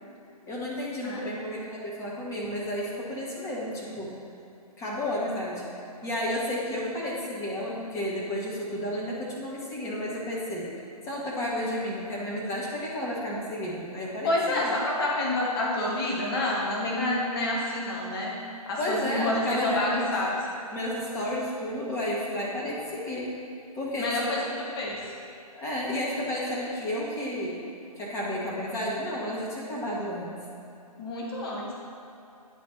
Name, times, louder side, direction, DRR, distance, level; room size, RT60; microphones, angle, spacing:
voice 1, 0.4-4.1 4.8-5.6 6.0-10.7 11.0-14.7 18.8-20.1 20.7-23.3 23.7-24.3 25.5-27.6 28.0-30.4, left 1 dB, 15° left, -5 dB, 1.2 m, -32 dB
voice 2, 14.2-18.4 18.6-20.3 24.0-24.4 24.7-25.0 31.0-31.7, left 2 dB, 40° left, -4 dB, 1.4 m, -28 dB
9.2 x 4.3 x 4.4 m, 2.7 s
figure-of-eight pair, 135°, 20 cm